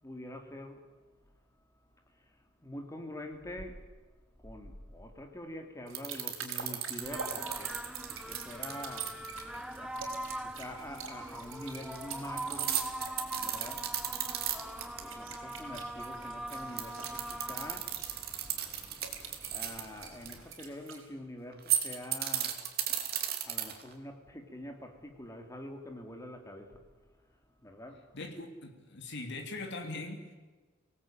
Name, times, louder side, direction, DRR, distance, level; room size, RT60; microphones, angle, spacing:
voice 1, 0.0-0.9 1.2-1.3 2.1-3.9 4.3-13.1 13.4-18.5 19.1-22.7 23.0-28.2, left 1 dB, 15° left, 4 dB, 3.0 m, -46 dB
sound 1, 5.9-21.1, right 5 dB, 70° right, 5.2 m, -49 dB
sound 2, 6.0-9.4 11.9-15.0 15.3-15.4 16.5-20.3 21.5-23.9, right 10 dB, 50° right, 2.8 m, -34 dB
sound 3, 7.0-20.5, right 1 dB, 5° right, 1.0 m, -43 dB
voice 2, 28.1-30.3, left 2 dB, 60° left, 4 dB, 3.2 m, -41 dB
24.5 x 18.0 x 9.1 m, 1.3 s
head